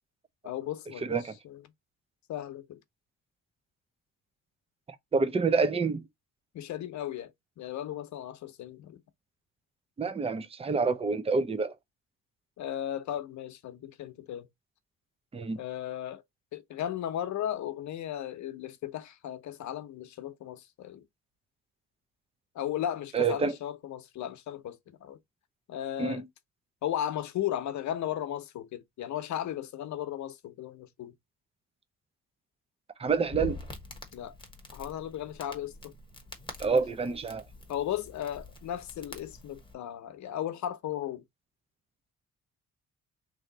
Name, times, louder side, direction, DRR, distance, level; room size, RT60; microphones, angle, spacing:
voice 1, 0.4-1.2 1.4-1.6 2.3-2.8 6.5-7.3 7.6-9.0 12.6-14.5 15.6-16.2 16.5-21.0 22.5-25.2 25.7-26.2 26.8-31.1 34.1-34.3 34.7-35.9 37.7-41.2, left 11 dB, 70° left, 0.8 m, -36 dB
voice 2, 1.0-1.3 5.1-6.0 10.0-11.7 15.3-15.6 23.1-23.5 26.0-26.2 33.0-33.6 36.6-37.4, right 4 dB, 20° right, 0.6 m, -27 dB
Crackle, 33.1-39.7, left 3 dB, 15° left, 1.2 m, -46 dB
3.2 x 2.7 x 3.9 m
cardioid pair, 90°, 30 cm